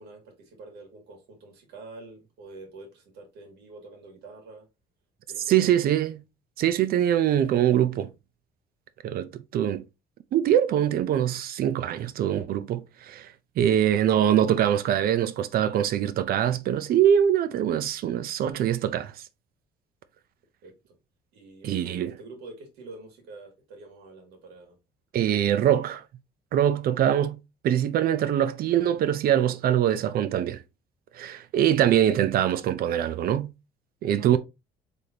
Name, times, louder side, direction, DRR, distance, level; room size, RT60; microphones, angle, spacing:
voice 1, 0.0-4.7 5.3-5.9 20.6-21.0 21.3-24.8 34.2-34.4, right 3 dB, 80° right, 1.9 m, -46 dB
voice 2, 5.5-6.2 6.6-8.1 9.0-9.8 10.3-13.3 13.6-19.1 21.6-22.1 25.1-26.0 26.5-27.4 27.6-30.6 31.1-33.5 34.0-34.4, right 10 dB, 60° right, 0.6 m, -23 dB
4.1 x 3.4 x 2.8 m
cardioid pair, 110°, 17 cm